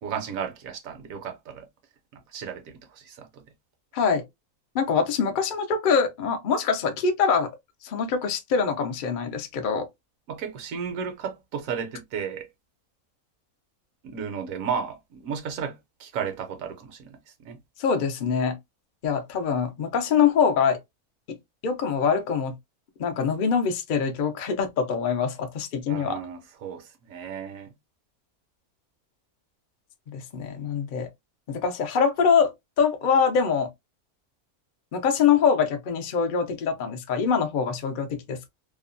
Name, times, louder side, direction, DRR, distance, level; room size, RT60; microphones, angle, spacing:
voice 1, 0.0-1.7 2.3-3.4 10.3-12.5 14.0-17.2 17.4-17.6 25.9-27.7, right 7 dB, 70° right, 1.0 m, -34 dB
voice 2, 4.7-7.5 7.8-9.9 17.8-18.6 19.0-20.8 21.3-21.4 21.6-22.5 23.0-26.2 30.1-31.1 31.5-33.7 34.9-38.5, left 6 dB, 65° left, 0.5 m, -24 dB
2.7 x 2.2 x 2.5 m
omnidirectional pair, 1.6 m